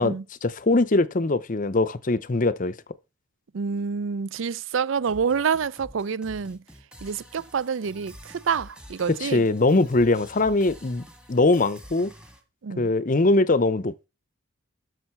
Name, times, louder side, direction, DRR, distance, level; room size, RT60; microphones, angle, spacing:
voice 1, 0.4-2.7 9.2-11.0 11.3-12.1 12.8-14.1, left 2 dB, 40° left, 0.6 m, -21 dB
voice 2, 3.5-6.6 7.0-9.5 12.6-12.9, right 6 dB, 65° right, 0.4 m, -27 dB
sound 1, 5.0-12.4, equal, 5° right, 1.8 m, -48 dB
12.5 x 6.4 x 4.5 m
head